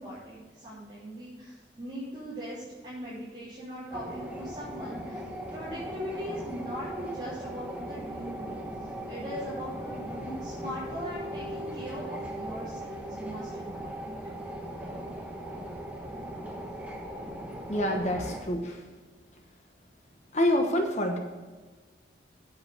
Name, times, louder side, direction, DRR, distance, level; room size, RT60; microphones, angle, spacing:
voice 1, 0.0-5.2 5.5-8.6 9.1-14.2, equal, 25° right, -12 dB, 3.5 m, -40 dB
sound 1, 3.9-18.4, equal, 5° right, 1.1 m, -38 dB
voice 2, 17.7-18.8 20.3-21.2, left 1 dB, 40° left, 3 dB, 1.1 m, -26 dB
8.7 x 7.7 x 6.7 m, 1.4 s
head